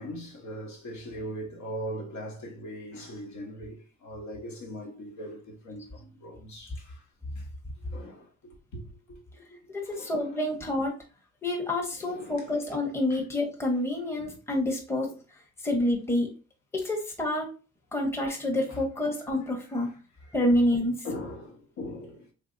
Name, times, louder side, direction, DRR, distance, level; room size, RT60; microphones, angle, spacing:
voice 1, 0.0-7.0 7.4-7.5 7.8-9.6 9.9-10.4 12.0-12.5 13.1-13.2 14.1-14.4 15.0-15.2 18.7-18.8 19.7-19.9 20.2-20.4 21.0-22.3, equal, 70° left, 1.1 m, -41 dB
voice 2, 9.7-10.9 11.4-15.1 15.6-16.3 16.7-17.5 17.9-19.9 20.3-21.1, left 1 dB, 10° left, 0.8 m, -28 dB
3.3 x 2.6 x 2.5 m
cardioid pair, 90°, 30 cm